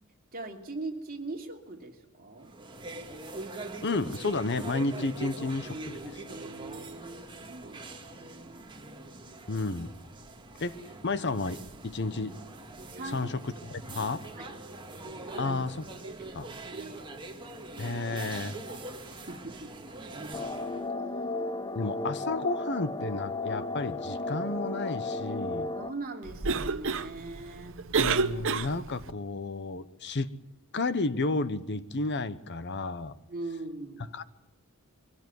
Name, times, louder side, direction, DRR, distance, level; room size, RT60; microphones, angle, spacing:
voice 1, 0.3-2.5 6.3-7.8 8.1-8.7 12.9-13.3 14.3-14.6 15.3-15.6 16.2-16.4 16.7-17.0 19.0-19.7 25.8-27.8 33.3-34.0, right 3 dB, 40° right, 1 dB, 2.9 m, -41 dB
sound 1, 2.4-20.9, right 2 dB, 20° right, 2.0 m, -43 dB
voice 2, 3.8-6.0 9.5-9.9 10.6-10.8 11.0-12.4 13.1-14.2 15.4-15.8 16.3-16.5 17.8-18.6 21.7-25.7 28.0-30.3 30.7-33.1 34.1-34.2, left 3 dB, 50° left, 14 dB, 0.9 m, -32 dB
sound 2, 20.3-25.9, left 2 dB, 20° left, 0.7 m, -34 dB
Cough, 26.2-29.1, right 4 dB, 60° right, 0.9 m, -30 dB
23.0 x 17.0 x 9.6 m, 0.92 s
head